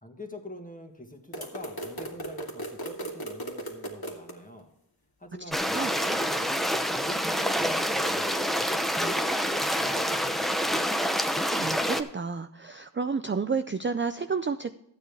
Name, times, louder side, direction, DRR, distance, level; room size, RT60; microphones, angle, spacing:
voice 1, 0.0-4.7 5.2-6.5 7.0-9.4 9.8-10.9, left 1 dB, 20° left, 3 dB, 1.7 m, -44 dB
sound 1, 1.3-4.3, right 1 dB, 55° left, 2.0 m, -37 dB
voice 2, 5.4-5.9 11.5-14.8, right 5 dB, 30° right, 9 dB, 0.4 m, -31 dB
sound 2, 5.5-12.0, equal, ahead, 0.7 m, -27 dB
13.0 x 8.7 x 3.4 m, 0.78 s
wide cardioid pair, 65°, 45 cm